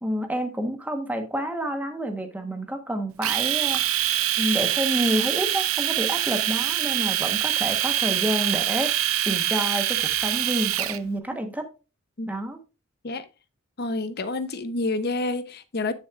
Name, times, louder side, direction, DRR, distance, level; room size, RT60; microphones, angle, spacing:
voice 1, 0.0-3.8 4.4-11.7 12.3-12.6, equal, 5° right, 1.2 m, -29 dB
Domestic sounds home sounds, 3.2-11.0, right 12 dB, 80° right, 0.7 m, -24 dB
voice 2, 13.8-15.9, left 2 dB, 50° left, 0.8 m, -28 dB
9.7 x 6.4 x 2.4 m
head